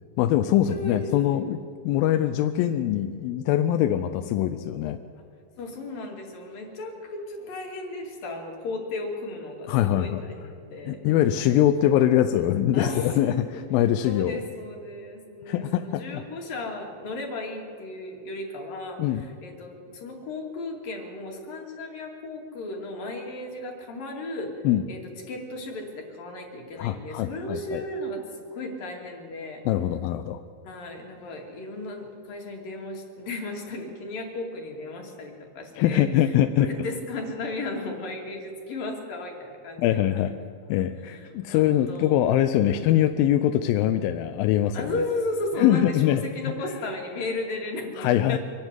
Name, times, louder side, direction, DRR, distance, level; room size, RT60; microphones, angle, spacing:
voice 1, 0.0-5.0 9.7-10.2 10.9-13.4 13.7-14.4 15.5-16.2 19.0-19.2 24.6-24.8 26.8-27.8 29.7-30.4 35.8-36.7 39.8-40.3 40.7-44.9 45.6-46.2 48.0-48.4, left 12 dB, 80° left, 9 dB, 2.3 m, -23 dB
voice 2, 0.7-1.4 5.6-11.0 12.7-13.6 14.0-24.5 24.9-29.6 30.6-36.3 36.6-40.0 41.0-42.3 42.6-42.8 44.7-48.4, left 2 dB, 65° left, 1 dB, 4.0 m, -35 dB
24.0 x 11.5 x 9.6 m, 2.3 s
omnidirectional pair, 4.4 m